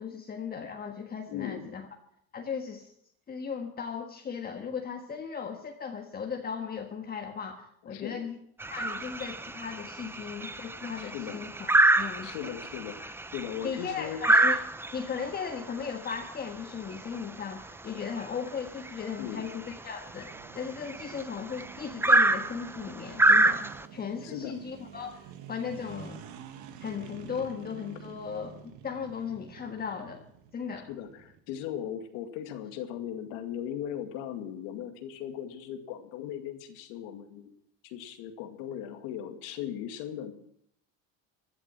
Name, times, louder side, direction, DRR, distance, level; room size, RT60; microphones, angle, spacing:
voice 1, 0.0-1.9 2.3-2.9 3.3-8.4 8.7-11.7 12.0-12.5 13.6-14.6 14.9-20.3 20.5-26.2 26.8-28.5 28.8-30.9, left 6 dB, 30° left, 3 dB, 1.5 m, -37 dB
voice 2, 1.3-1.7 7.9-8.2 11.0-11.4 12.2-14.2 19.2-19.5 24.2-24.6 30.8-37.5 37.8-40.3, left 9 dB, 80° left, 7 dB, 2.1 m, -38 dB
sound 1, 8.6-23.9, right 2 dB, 5° right, 0.7 m, -27 dB
sound 2, 20.1-31.4, right 8 dB, 70° right, 1.8 m, -48 dB
16.0 x 11.0 x 6.1 m, 0.68 s
supercardioid pair, 110°, 31 cm